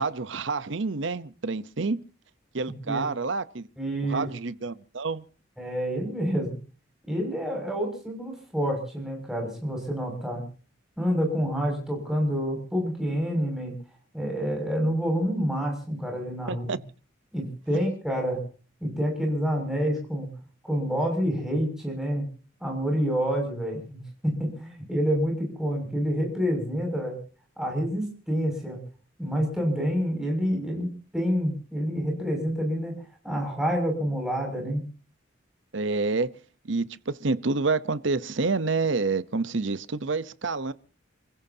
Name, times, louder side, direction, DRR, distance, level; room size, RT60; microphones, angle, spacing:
voice 1, 0.0-2.0 2.5-3.7 4.0-5.2 16.5-16.8 35.7-36.3 36.6-40.7, right 3 dB, 70° right, 0.8 m, -28 dB
voice 2, 3.8-4.3 5.6-6.6 7.1-10.4 11.0-13.7 14.1-16.6 17.3-18.4 18.8-20.4 20.6-22.3 22.6-27.2 27.6-28.8 29.2-33.0 33.2-34.8, equal, ahead, 6.3 m, -28 dB
28.5 x 16.0 x 2.8 m
head